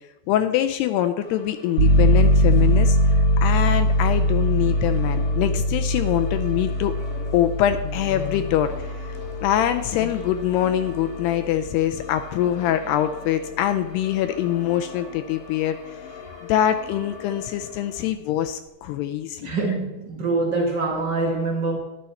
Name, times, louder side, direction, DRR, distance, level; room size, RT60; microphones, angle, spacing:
voice 1, 0.3-7.0 7.3-16.1 16.5-19.5, left 11 dB, 80° left, 8 dB, 2.5 m, -24 dB
sound 1, 1.2-18.1, left 6 dB, 65° left, 0.9 m, -41 dB
sound 2, 1.8-12.3, left 1 dB, 40° right, 3.2 m, -22 dB
voice 2, 19.4-21.8, right 3 dB, 80° right, 0 dB, 0.9 m, -24 dB
12.0 x 11.5 x 4.2 m, 1.0 s
omnidirectional pair, 5.0 m